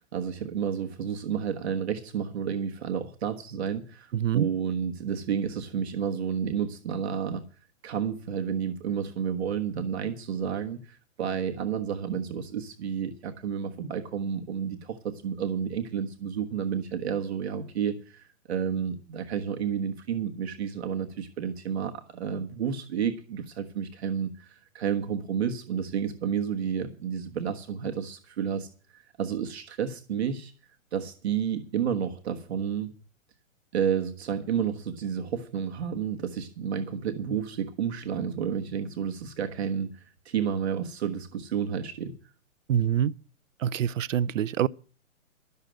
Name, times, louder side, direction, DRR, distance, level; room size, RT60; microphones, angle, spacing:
voice 1, 0.0-7.4 7.8-30.5 30.9-32.9 33.7-42.1, right 8 dB, 50° right, 1.4 m, -31 dB
voice 2, 4.1-4.5 42.7-43.1 43.6-44.7, right 10 dB, 70° right, 0.6 m, -25 dB
12.5 x 6.7 x 8.9 m
hypercardioid pair, 165°, 40 cm